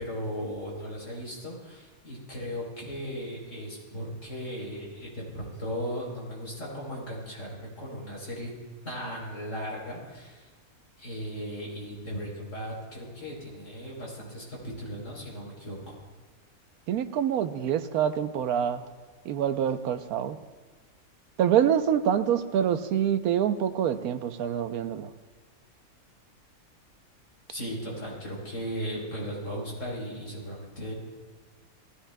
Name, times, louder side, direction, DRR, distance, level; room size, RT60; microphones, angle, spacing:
voice 1, 0.0-8.5 8.8-10.5 11.0-16.0 27.5-30.9, equal, 55° left, -3 dB, 4.0 m, -37 dB
voice 2, 16.9-18.8 19.3-20.4 21.4-25.1, right 9 dB, 85° right, 10 dB, 1.1 m, -26 dB
19.0 x 14.5 x 2.2 m, 1.3 s
omnidirectional pair, 1.5 m